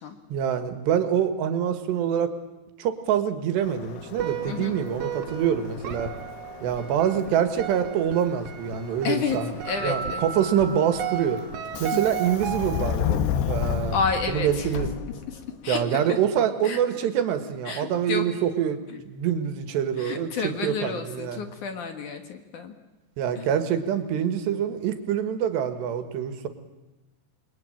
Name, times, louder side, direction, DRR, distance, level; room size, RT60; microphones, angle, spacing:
voice 1, 0.3-2.3 2.8-6.1 6.6-9.6 9.8-11.4 11.8-13.2 13.5-14.0 14.3-14.9 15.7-21.4 23.2-26.5, right 9 dB, 85° right, 9 dB, 3.8 m, -25 dB
Subway metro underground, 3.6-15.6, left 9 dB, 80° left, 3.3 m, -33 dB
sound 1, 4.2-13.2, right 11 dB, 65° right, 2.8 m, -36 dB
voice 2, 9.0-9.4 9.6-10.3 13.9-14.7 15.6-16.2 16.6-16.8 17.7-18.3 20.0-22.7 23.4-23.5, left 5 dB, 60° left, 6 dB, 2.6 m, -30 dB
Keyboard (musical), 9.7-12.1, right 3 dB, 40° right, 0.8 m, -37 dB
28.5 x 22.0 x 9.0 m, 1.0 s
omnidirectional pair, 4.8 m